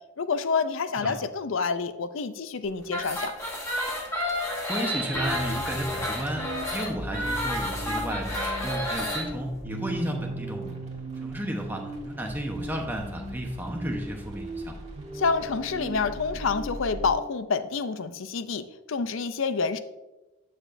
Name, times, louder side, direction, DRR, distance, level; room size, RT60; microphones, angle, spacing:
voice 1, 0.2-3.3 15.1-19.8, left 5 dB, 70° left, 12 dB, 0.5 m, -28 dB
sound 1, 2.8-9.3, left 1 dB, 15° left, 1.3 m, -31 dB
voice 2, 4.7-6.4 6.7-10.7 11.2-14.8, right 1 dB, 10° right, 1 dB, 0.9 m, -33 dB
sound 2, 5.1-17.1, right 1 dB, 30° right, 1.4 m, -38 dB
9.0 x 6.6 x 2.6 m, 1.1 s
head